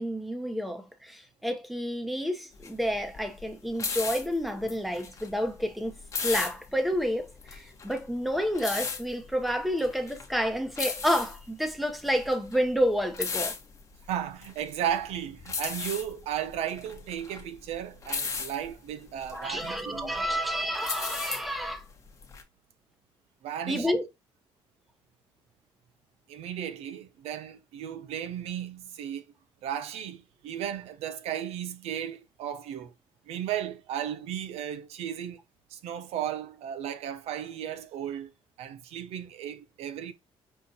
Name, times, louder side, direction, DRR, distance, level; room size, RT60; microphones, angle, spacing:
voice 1, 0.0-5.9 6.2-13.5 19.3-21.8 23.7-24.1, equal, ahead, 0.8 m, -29 dB
sound 1, 2.5-22.4, left 5 dB, 30° left, 1.0 m, -37 dB
voice 2, 14.1-20.4 23.4-23.9 26.3-29.2 29.6-32.9 33.3-35.4 35.7-38.3 38.6-40.1, right 10 dB, 80° right, 0.7 m, -35 dB
5.6 x 2.3 x 4.0 m
cardioid pair, 130°, 10 cm